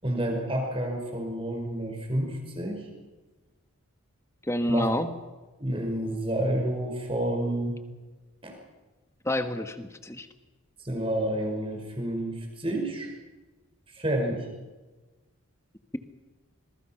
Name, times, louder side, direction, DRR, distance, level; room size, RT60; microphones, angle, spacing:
voice 1, 0.0-2.9 4.7-4.9 5.6-7.8 8.4-8.6 10.8-13.1 13.9-14.5, right 1 dB, 25° right, 2 dB, 5.4 m, -29 dB
voice 2, 4.4-5.1 9.2-10.3, left 1 dB, 15° left, 8 dB, 1.3 m, -28 dB
26.5 x 21.5 x 5.9 m, 1.2 s
head